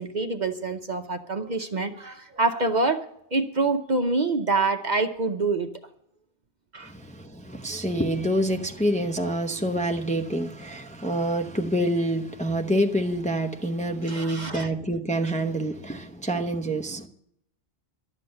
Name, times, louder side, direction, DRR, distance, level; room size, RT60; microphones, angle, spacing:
voice 1, 0.0-3.0 3.3-5.7 6.7-6.9 14.1-14.7, right 3 dB, 45° right, 0.8 m, -26 dB
voice 2, 6.9-17.1, right 1 dB, 10° left, 0.7 m, -27 dB
12.0 x 7.5 x 7.8 m
omnidirectional pair, 1.1 m